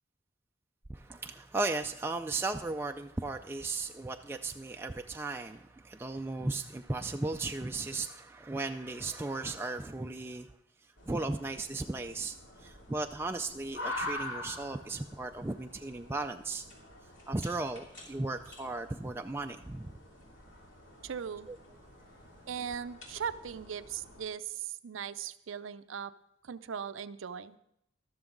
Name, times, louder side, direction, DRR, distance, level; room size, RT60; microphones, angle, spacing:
voice 1, 0.9-10.5 11.1-16.6 17.3-20.0 21.5-21.6, right 2 dB, 10° right, 5 dB, 0.3 m, -36 dB
sound 1, 11.0-24.3, left 2 dB, 70° left, 2.8 m, -46 dB
voice 2, 21.0-21.5 22.5-26.1 26.4-27.6, right 7 dB, 80° right, 13 dB, 0.5 m, -39 dB
13.0 x 13.0 x 3.9 m, 0.78 s
head